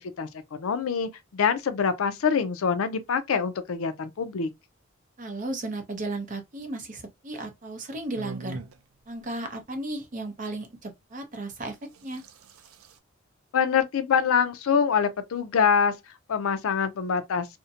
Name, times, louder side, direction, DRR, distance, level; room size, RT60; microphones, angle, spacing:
voice 1, 0.2-4.5 13.5-15.9 16.3-17.5, left 6 dB, 75° left, 0.4 m, -25 dB
voice 2, 5.2-8.6 9.1-12.2, right 2 dB, 35° right, 0.6 m, -35 dB
sound 1, 8.1-8.8 10.6-10.7 11.7-13.0, right 3 dB, 85° right, 0.4 m, -41 dB
2.6 x 2.1 x 2.6 m
head